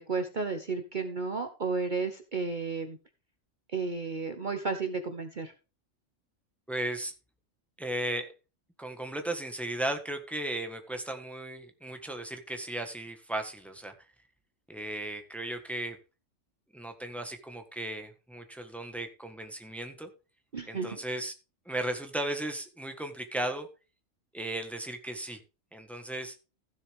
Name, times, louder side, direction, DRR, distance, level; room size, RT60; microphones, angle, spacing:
voice 1, 0.0-3.0 3.7-5.5 20.5-21.0, right 4 dB, 40° right, 7 dB, 1.0 m, -33 dB
voice 2, 6.7-7.1 7.8-8.3 8.8-13.9 14.7-16.0 16.7-20.1 20.7-21.3 21.6-23.7 24.3-25.4 25.7-26.4, right 1 dB, ahead, 5 dB, 1.4 m, -36 dB
15.0 x 7.0 x 3.6 m, 0.31 s
omnidirectional pair, 1.4 m